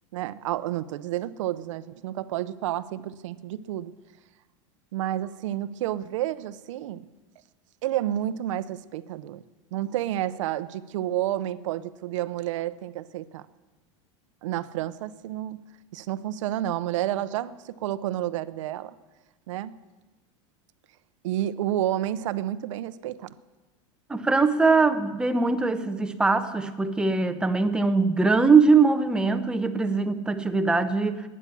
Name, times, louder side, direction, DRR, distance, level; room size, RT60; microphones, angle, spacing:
voice 1, 0.1-3.9 4.9-7.0 7.8-9.4 9.7-13.4 14.4-15.6 15.9-18.9 19.5-19.7 21.2-23.3, right 13 dB, 80° right, 15 dB, 0.7 m, -30 dB
voice 2, 24.1-31.2, right 4 dB, 5° right, 9 dB, 0.7 m, -22 dB
19.5 x 9.8 x 6.9 m, 1.2 s
supercardioid pair, 165°, 16 cm